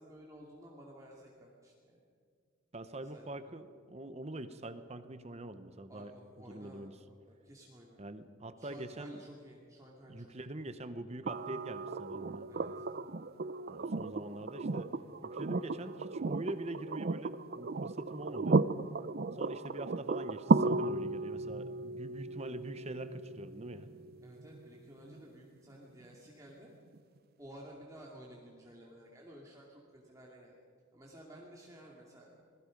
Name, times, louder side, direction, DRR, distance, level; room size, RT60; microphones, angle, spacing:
voice 1, 0.0-2.0 3.1-3.5 5.9-8.0 8.6-10.3 12.5-12.9 24.2-26.7 27.4-30.6 30.9-32.3, right 1 dB, 15° right, -3 dB, 2.5 m, -53 dB
voice 2, 2.7-6.1 6.5-6.9 8.0-9.2 10.1-12.5 13.7-14.9 15.2-18.6 19.3-23.9, right 1 dB, 35° right, 11 dB, 0.9 m, -44 dB
sound 1, 11.3-25.2 26.9-27.0, right 3 dB, 50° right, 0.5 m, -35 dB
27.5 x 20.5 x 5.3 m, 2.1 s
head